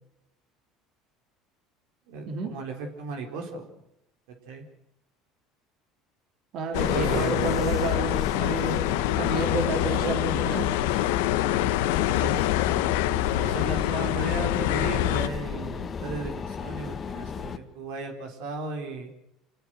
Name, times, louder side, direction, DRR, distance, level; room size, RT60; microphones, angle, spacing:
voice 1, 2.1-3.7 4.3-4.6 6.8-7.7 12.1-12.5 13.3-19.1, right 3 dB, 75° right, 3 dB, 4.2 m, -35 dB
voice 2, 6.5-8.8 9.2-10.7, right 3 dB, 60° right, 4 dB, 3.8 m, -30 dB
sound 1, 6.7-15.3, left 15 dB, 85° left, 1.1 m, -26 dB
sound 2, 6.7-17.6, left 6 dB, 35° left, 1.8 m, -34 dB
26.0 x 18.5 x 6.4 m, 0.83 s
supercardioid pair, 90°, 0 cm